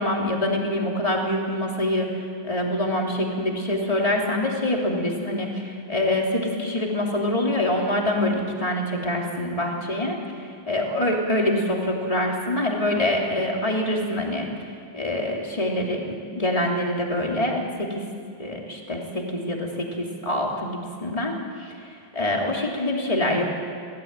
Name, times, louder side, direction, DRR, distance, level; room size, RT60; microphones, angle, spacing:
voice 1, 0.0-2.1 2.4-10.2 10.7-14.5 14.9-18.0 18.4-23.5, left 1 dB, 10° left, -1 dB, 2.6 m, -25 dB
24.0 x 16.5 x 9.0 m, 2.3 s
omnidirectional pair, 4.2 m